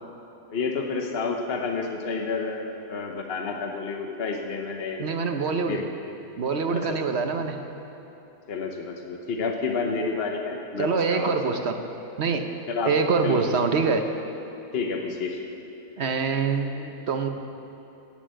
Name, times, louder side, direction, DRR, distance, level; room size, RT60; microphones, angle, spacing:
voice 1, 0.5-5.1 5.4-5.8 6.7-7.0 8.5-11.6 12.7-12.9 13.2-13.4 14.7-15.4, left 4 dB, 55° left, 2 dB, 1.2 m, -30 dB
voice 2, 5.0-5.8 6.4-7.6 10.8-11.7 12.2-12.5 12.8-14.0 16.0-17.3, right 5 dB, 65° right, 6 dB, 1.2 m, -25 dB
17.5 x 7.3 x 7.6 m, 2.9 s
omnidirectional pair, 1.2 m